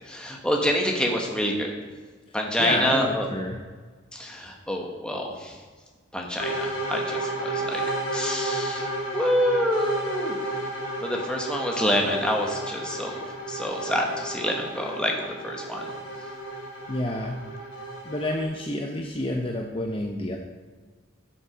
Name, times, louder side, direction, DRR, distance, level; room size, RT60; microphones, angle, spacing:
voice 1, 0.1-1.7 2.3-3.3 4.1-5.5 6.1-7.8 8.1-8.9 9.1-10.3 11.0-13.2 13.5-15.1 15.4-15.8, equal, 5° left, 0 dB, 1.3 m, -27 dB
voice 2, 2.6-3.6 16.9-17.4 18.0-20.4, left 1 dB, 25° left, 2 dB, 0.7 m, -29 dB
sound 1, 6.4-18.4, right 2 dB, 70° left, 3.8 m, -32 dB
12.0 x 7.2 x 5.0 m, 1.4 s
head